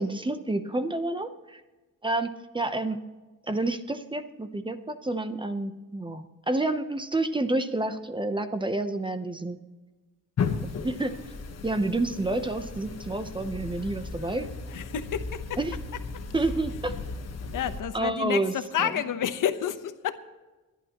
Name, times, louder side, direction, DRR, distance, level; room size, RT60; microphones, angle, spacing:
voice 1, 0.0-1.6 2.0-3.0 3.5-9.6 10.8-11.1 11.6-14.5 15.6-15.7 16.3-16.9 17.9-18.5 18.8-19.0, right 2 dB, 15° right, 9 dB, 0.7 m, -29 dB
sound 1, 10.4-17.8, left 4 dB, 55° left, 1.3 m, -35 dB
voice 2, 14.7-15.6 17.5-20.1, left 9 dB, 80° left, 10 dB, 1.0 m, -30 dB
28.5 x 11.0 x 3.0 m, 1.2 s
wide cardioid pair, 145°, 31 cm